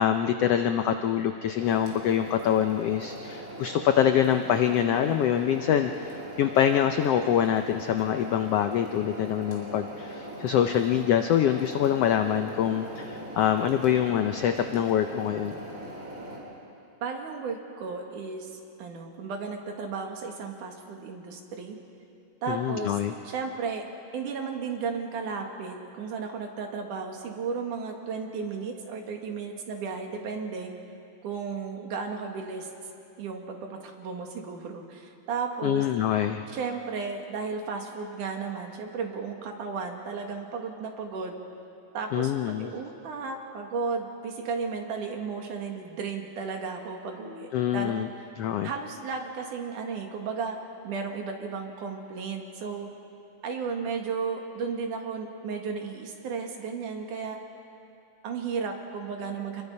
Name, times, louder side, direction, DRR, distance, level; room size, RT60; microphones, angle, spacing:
voice 1, 0.0-15.5 22.5-23.1 35.6-36.4 42.1-42.7 47.5-48.1 48.4-48.7, left 9 dB, 90° left, 7 dB, 1.3 m, -25 dB
sound 1, 1.6-16.4, right 1 dB, 35° right, 4.4 m, -41 dB
voice 2, 17.0-21.8 22.4-23.0 23.2-23.8 24.1-30.7 31.2-32.7 33.2-35.9 36.5-41.4 41.9-42.3 42.6-48.1 48.6-50.6 50.8-52.9 53.4-57.4 58.2-59.6, right 5 dB, 75° right, 2 dB, 3.3 m, -34 dB
27.0 x 21.5 x 5.4 m, 2.6 s
omnidirectional pair, 3.7 m